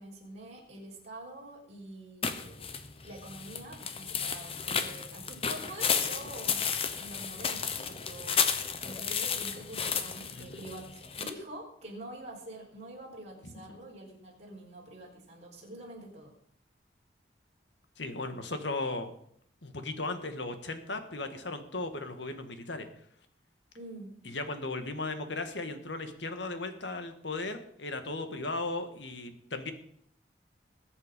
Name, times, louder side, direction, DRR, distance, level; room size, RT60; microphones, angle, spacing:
voice 1, 0.0-2.7 3.0-6.7 6.9-16.3 23.7-24.2, right 1 dB, 35° right, -3 dB, 4.4 m, -46 dB
sound 1, 2.2-11.3, left 6 dB, 30° left, 1.0 m, -33 dB
voice 2, 10.3-10.6 13.7-13.8 18.0-19.1 19.6-22.9 24.2-29.7, left 2 dB, 80° left, 8 dB, 1.7 m, -36 dB
20.5 x 8.2 x 5.3 m, 0.67 s
head